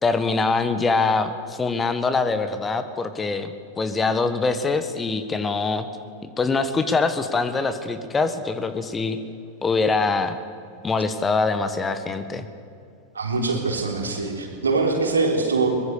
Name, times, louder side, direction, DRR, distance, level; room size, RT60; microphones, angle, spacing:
voice 1, 0.0-5.9 6.4-9.2 9.6-10.4 10.8-12.5, left 4 dB, 15° left, 11 dB, 1.4 m, -23 dB
voice 2, 13.1-15.7, right 3 dB, 75° right, 3 dB, 3.8 m, -23 dB
23.0 x 22.0 x 6.8 m, 2.5 s
figure-of-eight pair, 90°, 0 cm